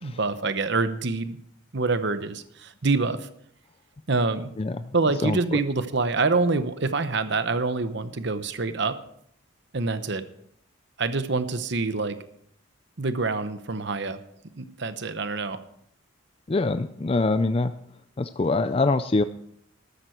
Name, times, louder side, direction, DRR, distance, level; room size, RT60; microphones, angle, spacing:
voice 1, 0.0-1.4 1.7-3.3 4.1-4.5 4.9-9.0 9.7-10.2 11.0-12.2 13.0-14.2 14.6-15.6, right 3 dB, 55° right, 11 dB, 0.9 m, -26 dB
voice 2, 5.2-5.6 16.5-17.7 18.2-19.2, left 3 dB, 30° left, 10 dB, 0.4 m, -24 dB
13.0 x 12.5 x 4.6 m, 0.69 s
head